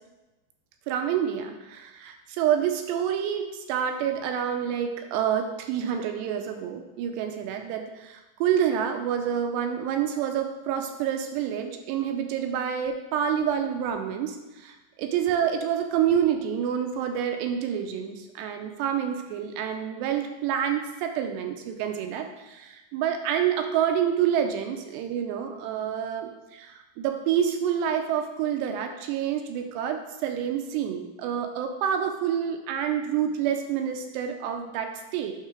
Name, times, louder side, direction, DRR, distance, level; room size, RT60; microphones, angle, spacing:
voice 1, 0.9-35.3, right 9 dB, 80° right, 5 dB, 2.6 m, -28 dB
8.8 x 3.8 x 6.0 m, 1.1 s
omnidirectional pair, 5.2 m